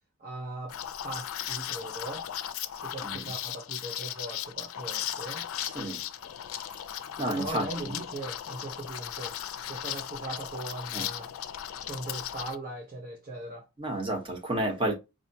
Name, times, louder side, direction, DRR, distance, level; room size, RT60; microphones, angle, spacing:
voice 1, 0.2-0.8 1.0-2.3 2.8-5.5 7.3-9.4 9.7-11.3 11.8-13.7, right 2 dB, 40° right, 0.6 m, -39 dB
Liquid, 0.7-12.6, left 10 dB, 90° left, 0.4 m, -37 dB
voice 2, 3.0-3.3 5.6-6.0 7.2-7.9 10.9-11.1 13.8-14.9, right 1 dB, 25° right, 1.0 m, -31 dB
4.8 x 2.1 x 2.7 m
head